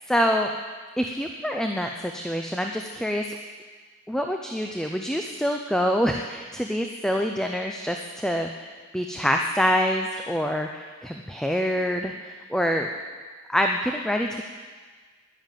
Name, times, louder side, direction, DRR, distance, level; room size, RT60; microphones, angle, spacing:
voice 1, 0.1-0.5 1.0-3.4 4.1-8.5 8.9-12.9 13.5-14.4, equal, 5° left, 3 dB, 0.5 m, -26 dB
10.5 x 10.5 x 7.5 m, 1.5 s
head